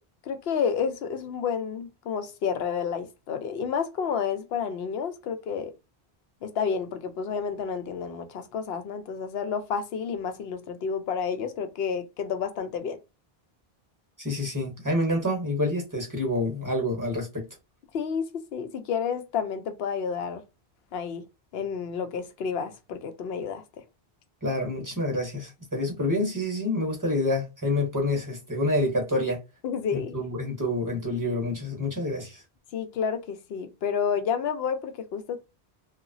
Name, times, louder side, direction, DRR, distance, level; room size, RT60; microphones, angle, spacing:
voice 1, 0.2-5.7 6.4-13.0 17.9-20.4 20.9-21.2 21.5-23.6 29.6-30.2 32.7-35.4, left 6 dB, 75° left, 0.8 m, -30 dB
voice 2, 14.2-17.4 24.4-29.4 29.9-32.4, left 1 dB, 20° right, 0.8 m, -27 dB
2.8 x 2.3 x 2.6 m
omnidirectional pair, 1.0 m